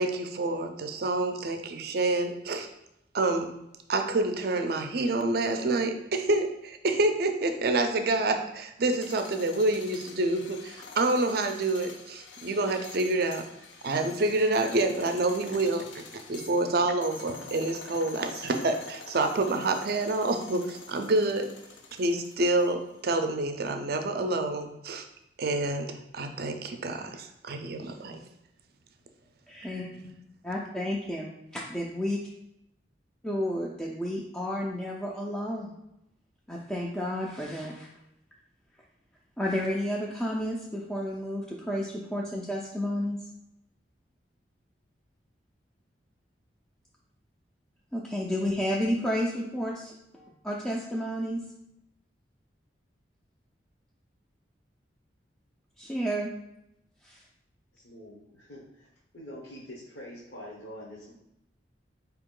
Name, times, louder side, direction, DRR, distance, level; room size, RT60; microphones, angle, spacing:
voice 1, 0.0-2.7 3.1-3.5 3.9-13.4 13.8-16.0 16.3-21.5 22.0-25.1 25.4-28.2 29.9-30.1, right 2 dB, 55° right, 6 dB, 0.5 m, -28 dB
sound 1, 8.8-23.0, left 5 dB, 85° left, 0.5 m, -46 dB
voice 2, 29.5-29.9 30.4-32.2 33.2-35.7 36.5-37.9 39.4-43.2 47.9-51.4 55.8-56.3 57.0-57.2, equal, 5° left, -4 dB, 0.3 m, -31 dB
voice 3, 57.7-58.9 59.1-61.1, left 1 dB, 70° left, -6 dB, 0.9 m, -45 dB
4.4 x 2.9 x 3.7 m, 0.84 s
head